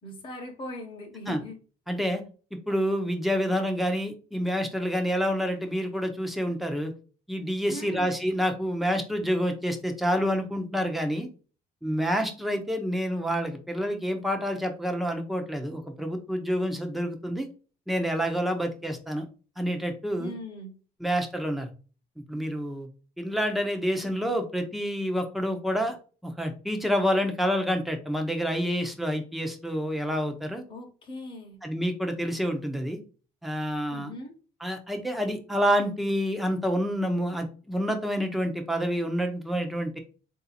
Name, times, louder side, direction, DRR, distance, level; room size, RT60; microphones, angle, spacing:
voice 1, 0.0-1.6 7.7-8.1 20.2-20.7 30.7-31.6 33.9-34.3, left 1 dB, 30° left, 1 dB, 1.2 m, -40 dB
voice 2, 1.9-2.2 2.7-6.9 7.3-11.3 11.8-17.5 17.9-19.2 19.6-20.3 21.0-21.7 22.3-22.9 23.2-26.0 26.2-30.6 31.6-33.0 33.4-34.1 34.6-40.0, equal, ahead, 4 dB, 0.9 m, -28 dB
3.6 x 2.8 x 4.2 m, 0.37 s
cardioid pair, 110°, 17 cm